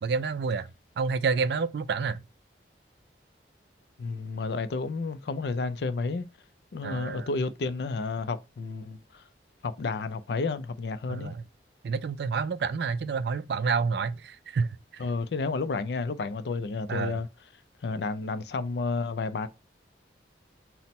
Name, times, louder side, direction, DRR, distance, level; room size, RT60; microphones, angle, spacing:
voice 1, 0.0-0.7 1.0-2.2 6.8-7.3 11.1-11.4 11.8-15.0 16.9-17.2, right 5 dB, 60° right, 0.3 m, -29 dB
voice 2, 4.0-6.3 6.7-9.2 9.6-11.4 15.0-17.3 17.8-19.5, left 3 dB, 65° left, 0.4 m, -31 dB
4.2 x 2.1 x 4.1 m
head